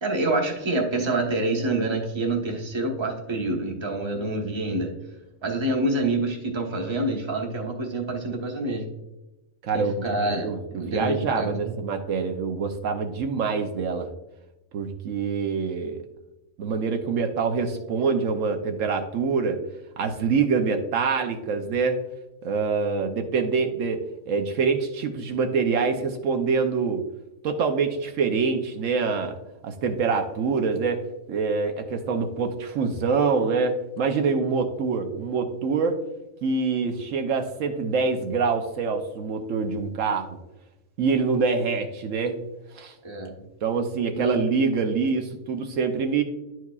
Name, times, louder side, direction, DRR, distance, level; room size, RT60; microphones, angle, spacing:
voice 1, 0.0-4.9 5.4-8.9 9.7-10.5 10.7-11.7 43.0-43.3 44.1-44.4, right 2 dB, 25° right, 1 dB, 1.0 m, -27 dB
voice 2, 9.6-14.1 14.7-16.0 16.6-19.6 20.0-22.0 22.4-27.0 27.4-29.4 29.6-31.0 31.3-36.0 36.4-40.4 41.0-42.4 42.7-42.9 43.6-46.2, right 5 dB, 75° right, 4 dB, 1.0 m, -25 dB
11.0 x 4.6 x 2.3 m, 0.99 s
omnidirectional pair, 1.4 m